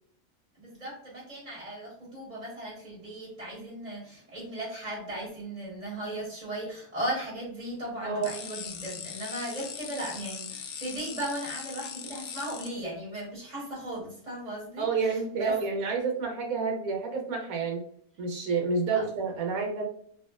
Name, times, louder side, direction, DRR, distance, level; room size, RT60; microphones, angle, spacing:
voice 1, 0.6-14.9 15.4-15.5 18.9-19.0, right 1 dB, 25° right, -5 dB, 1.5 m, -37 dB
voice 2, 8.0-8.4 14.8-17.8 18.2-19.8, right 4 dB, 75° right, 1 dB, 1.3 m, -29 dB
sound 1, 8.2-12.7, left 7 dB, 85° left, 1.1 m, -40 dB
3.4 x 2.7 x 2.4 m, 0.63 s
omnidirectional pair, 1.5 m